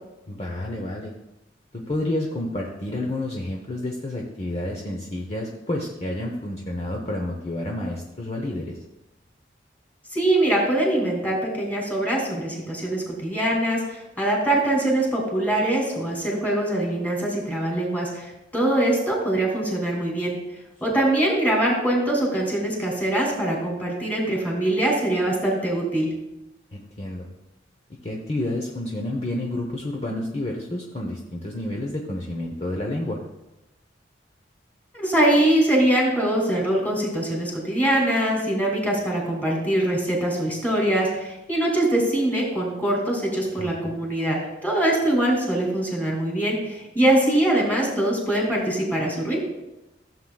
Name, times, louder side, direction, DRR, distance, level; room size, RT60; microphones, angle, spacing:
voice 1, 0.3-1.1 1.7-8.8 26.7-27.3 28.0-33.2 43.6-44.0, left 1 dB, 35° left, 0 dB, 0.9 m, -30 dB
voice 2, 10.1-18.3 18.5-20.4 20.8-26.1 34.9-49.5, right 1 dB, 10° left, -2 dB, 2.6 m, -23 dB
15.0 x 7.5 x 2.3 m, 0.95 s
head